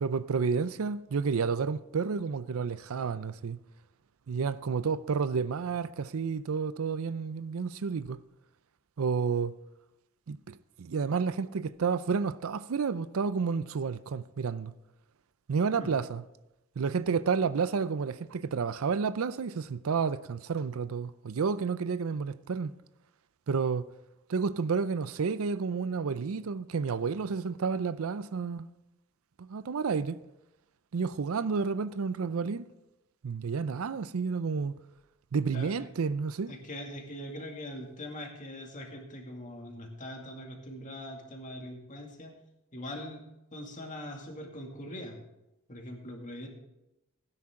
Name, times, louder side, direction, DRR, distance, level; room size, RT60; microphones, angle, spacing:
voice 1, 0.0-3.6 4.3-8.2 9.0-9.5 10.3-14.7 15.5-16.2 16.8-22.7 23.5-23.9 24.3-28.7 29.4-30.2 30.9-32.7 33.2-34.7 35.3-36.5, right 5 dB, 75° right, 0.5 m, -30 dB
voice 2, 35.5-35.9 36.5-42.3 42.7-43.2 43.5-45.2 45.7-46.5, left 1 dB, 35° left, 2.3 m, -42 dB
16.5 x 9.9 x 3.7 m
head